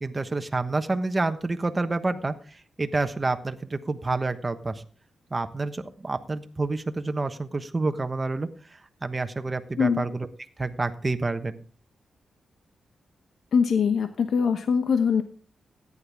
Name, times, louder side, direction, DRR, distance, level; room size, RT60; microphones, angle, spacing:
voice 1, 0.0-4.8 5.3-10.3 10.6-11.6, right 3 dB, 25° right, 8 dB, 1.1 m, -28 dB
voice 2, 13.5-15.2, left 6 dB, 70° left, 8 dB, 0.9 m, -22 dB
14.0 x 10.0 x 3.6 m, 0.40 s
cardioid pair, 90°, 0 cm